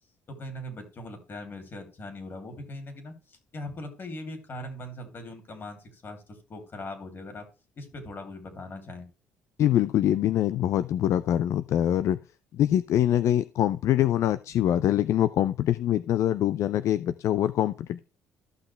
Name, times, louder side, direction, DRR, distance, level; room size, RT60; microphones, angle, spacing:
voice 1, 0.3-7.5 7.7-9.1, left 1 dB, 40° left, 5 dB, 2.9 m, -40 dB
voice 2, 9.6-12.2 12.5-18.0, left 11 dB, 65° left, 14 dB, 0.3 m, -24 dB
14.0 x 5.9 x 3.3 m, 0.34 s
cardioid pair, 90°, 6 cm